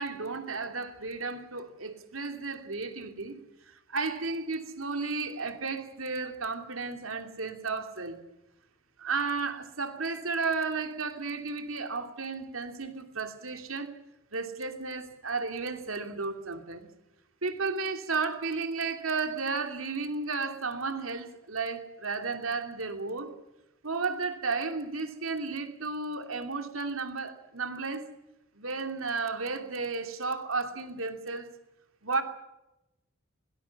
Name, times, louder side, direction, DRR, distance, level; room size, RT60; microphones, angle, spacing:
voice 1, 0.0-3.3 3.7-8.2 9.0-13.9 14.3-16.9 17.4-23.3 23.8-28.0 28.5-31.5 32.0-32.2, right 4 dB, 85° right, 2.8 m, -33 dB
22.0 x 19.5 x 7.1 m
head